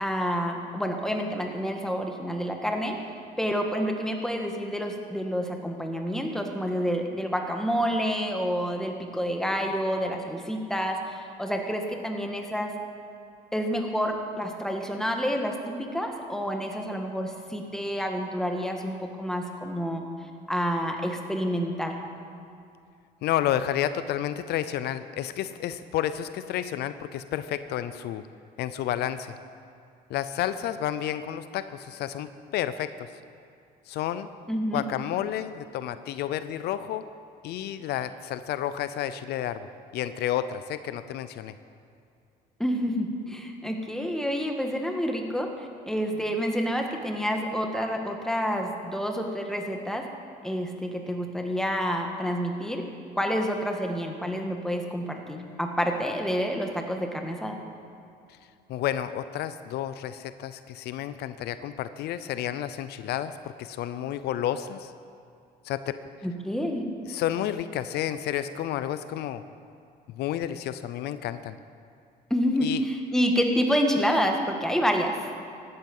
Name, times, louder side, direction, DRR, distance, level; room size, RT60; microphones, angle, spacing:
voice 1, 0.0-3.0 3.4-12.7 13.5-20.0 20.5-22.0 34.5-34.8 42.6-50.1 50.4-52.9 53.1-57.6 66.2-66.9 72.3-75.1, equal, 5° left, 3 dB, 1.7 m, -28 dB
voice 2, 23.2-28.3 28.6-29.3 30.1-33.1 33.9-34.3 34.7-37.1 37.4-39.7 39.9-41.5 58.7-64.9 65.6-66.0 67.1-69.4 70.1-71.6 72.6-72.8, left 11 dB, 75° left, 12 dB, 0.6 m, -31 dB
16.0 x 12.0 x 5.5 m, 2.5 s
cardioid pair, 110°, 17 cm